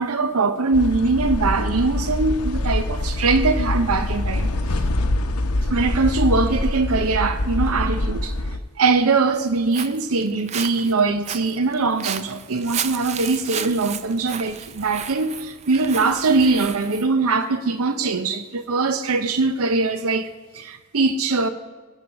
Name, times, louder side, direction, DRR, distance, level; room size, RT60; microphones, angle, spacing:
voice 1, 0.0-4.5 5.7-8.3 8.8-21.5, right 3 dB, 75° right, 0.7 m, -22 dB
sound 1, 0.7-8.6, left 1 dB, 85° left, 0.8 m, -24 dB
Walk footsteps, 9.4-17.1, right 8 dB, 30° right, 0.4 m, -33 dB
16.0 x 6.7 x 6.1 m
head